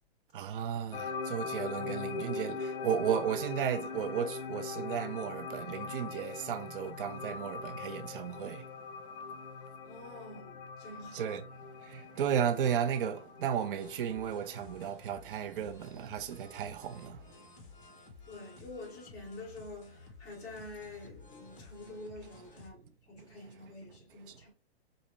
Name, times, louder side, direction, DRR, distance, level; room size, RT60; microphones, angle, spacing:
voice 1, 0.3-8.7 11.1-17.3 23.6-23.7 24.3-24.4, right 8 dB, 55° right, 0.5 m, -34 dB
sound 1, 0.9-14.9, left 4 dB, 65° left, 0.6 m, -41 dB
voice 2, 9.8-11.3 18.2-24.5, left 2 dB, 10° left, 1.3 m, -47 dB
sound 2, 13.8-22.7, left 4 dB, 30° left, 1.0 m, -54 dB
5.1 x 2.1 x 3.1 m
hypercardioid pair, 160°, 32 cm